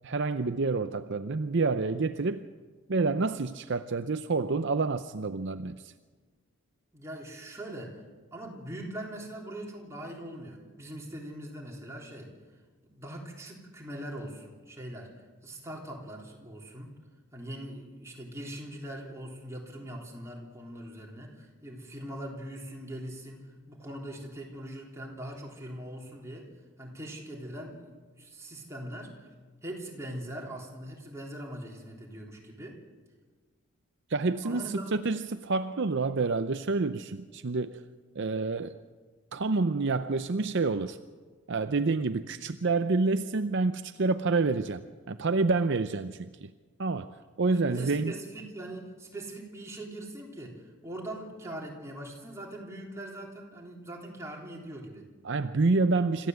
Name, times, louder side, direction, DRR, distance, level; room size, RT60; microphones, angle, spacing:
voice 1, 0.0-2.4 2.9-5.9 34.1-37.8 38.2-38.8 39.3-41.0 41.5-44.8 45.1-46.5 46.8-48.2 55.2-56.3, right 3 dB, 55° right, 0.6 m, -28 dB
voice 2, 6.9-8.0 8.3-12.3 12.9-16.9 17.3-26.5 26.8-27.9 28.2-29.3 29.6-32.8 34.4-34.9 47.4-55.1, right 1 dB, 15° right, 3.6 m, -41 dB
26.5 x 14.5 x 8.0 m
head